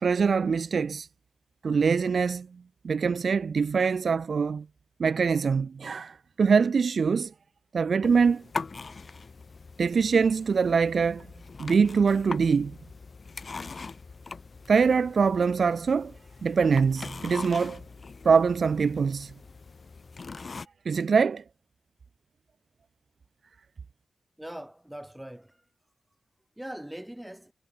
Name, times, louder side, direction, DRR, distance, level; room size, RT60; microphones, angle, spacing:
voice 1, 0.0-1.1 1.6-2.5 2.8-4.7 5.0-7.3 7.7-8.4 9.8-11.3 11.6-12.8 14.7-16.1 16.4-17.8 18.2-19.3 20.9-21.4, right 5 dB, 55° right, 0.5 m, -23 dB
sound 1, 8.0-20.7, left 4 dB, 40° left, 4.6 m, -42 dB
voice 2, 24.4-25.6 26.6-27.5, right 1 dB, 5° right, 4.5 m, -41 dB
wide cardioid pair, 135°, 0 cm